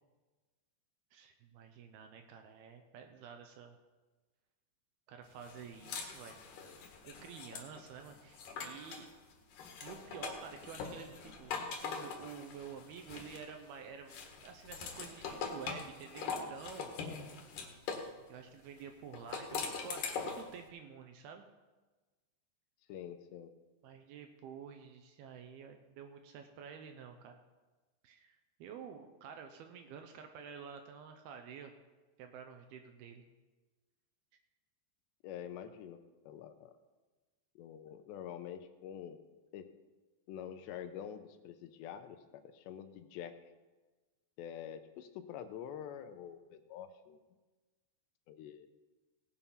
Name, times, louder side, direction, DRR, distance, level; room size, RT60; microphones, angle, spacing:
voice 1, 1.1-3.8 5.1-6.4 7.0-9.1 9.8-11.5 11.8-16.9 18.3-21.5 23.8-27.4 28.0-31.7 32.2-33.2, right 7 dB, 75° right, 6 dB, 2.4 m, -50 dB
sound 1, 5.4-9.1 9.5-13.7 14.1-18.1 19.1-20.5, left 5 dB, 60° left, 2.7 m, -42 dB
voice 2, 22.9-23.5 35.2-36.7 37.6-39.2 39.5-39.7 40.3-43.4 44.4-47.2 48.3-48.7, left 9 dB, 90° left, 9 dB, 2.9 m, -46 dB
18.0 x 7.3 x 5.6 m, 1.2 s
omnidirectional pair, 5.1 m